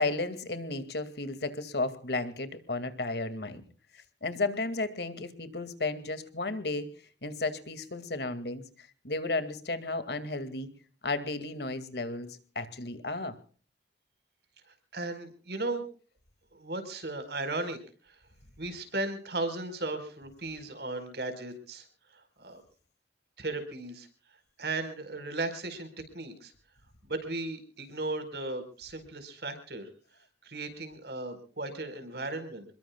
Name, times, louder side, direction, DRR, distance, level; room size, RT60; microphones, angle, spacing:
voice 1, 0.0-3.6 3.9-6.9 7.2-10.7 11.0-13.4, left 3 dB, 65° left, 11 dB, 2.3 m, -33 dB
voice 2, 14.9-15.8 16.5-17.8 18.6-21.8 22.4-22.6 23.4-24.1 24.6-25.9 26.1-26.5 27.1-29.9 30.4-32.7, right 2 dB, 65° right, 9 dB, 4.7 m, -36 dB
27.5 x 22.0 x 2.3 m, 0.40 s
head